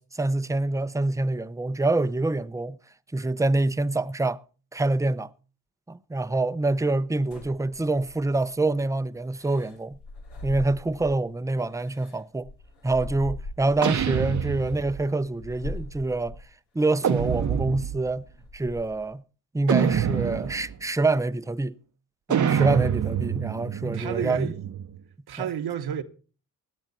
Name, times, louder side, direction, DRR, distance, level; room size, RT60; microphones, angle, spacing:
voice 1, 0.0-2.8 3.1-4.4 4.7-5.3 5.9-10.0 10.4-12.5 12.8-16.3 16.7-18.2 18.5-19.2 19.5-21.8 22.3-24.5 25.4-25.5, right 2 dB, 10° right, 0.6 m, -26 dB
sound 1, 7.3-8.5 9.3-11.3 11.7-14.0 14.6-14.7 15.3-16.5 17.0-17.4 17.8-19.1, left 1 dB, 85° left, 3.0 m, -40 dB
sound 2, 13.8-15.1 17.0-18.1 19.7-20.7 22.3-25.0, right 8 dB, 50° right, 0.8 m, -26 dB
voice 2, 23.8-24.7 25.3-26.0, right 9 dB, 75° right, 1.3 m, -31 dB
17.0 x 9.6 x 4.1 m
cardioid pair, 60°, 38 cm